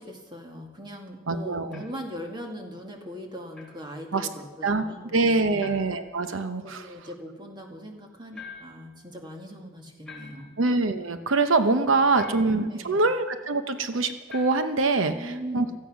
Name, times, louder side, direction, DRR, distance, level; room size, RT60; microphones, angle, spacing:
voice 1, 0.0-5.7 6.6-10.6 12.0-12.4 12.7-13.1 15.1-15.8, equal, 25° right, 2 dB, 2.0 m, -40 dB
voice 2, 1.3-1.8 4.1-4.3 4.6-4.9 5.1-6.8 10.6-15.7, right 3 dB, 80° right, 9 dB, 0.8 m, -24 dB
sound 1, 1.7-2.1 3.5-3.8 5.6-6.0 8.3-8.9 10.1-10.7 12.2-12.7 14.3-14.8, left 5 dB, ahead, 3.5 m, -45 dB
16.5 x 14.5 x 6.2 m, 1.3 s
head